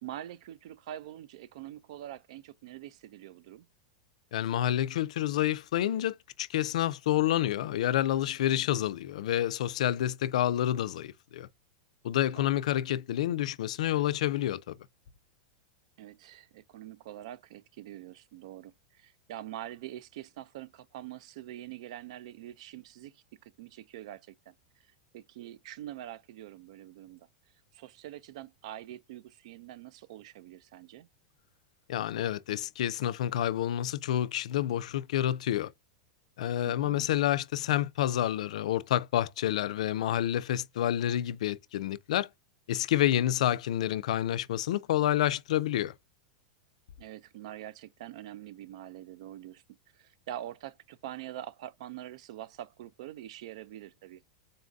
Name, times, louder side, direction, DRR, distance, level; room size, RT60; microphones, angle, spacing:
voice 1, 0.0-3.7 12.3-12.6 16.0-24.5 25.1-27.3 27.7-31.1 36.7-37.1 47.0-49.6 49.9-54.2, right 12 dB, 60° right, 0.4 m, -44 dB
voice 2, 4.3-11.5 12.0-14.7 31.9-35.7 36.4-42.3 42.7-45.9, left 12 dB, 75° left, 0.4 m, -29 dB
4.0 x 2.6 x 3.4 m
supercardioid pair, 165°, 4 cm